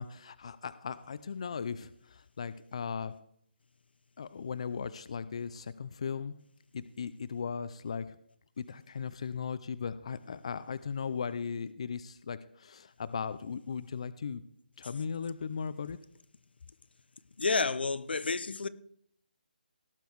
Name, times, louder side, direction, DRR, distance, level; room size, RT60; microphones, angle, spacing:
voice 1, 0.0-3.1 4.2-6.3 6.7-8.2 8.6-14.4 14.8-16.0, left 6 dB, 40° left, 0.5 m, -37 dB
voice 2, 17.4-18.7, left 4 dB, 90° left, 0.9 m, -30 dB
17.5 x 6.9 x 4.6 m
hypercardioid pair, 175°, 5 cm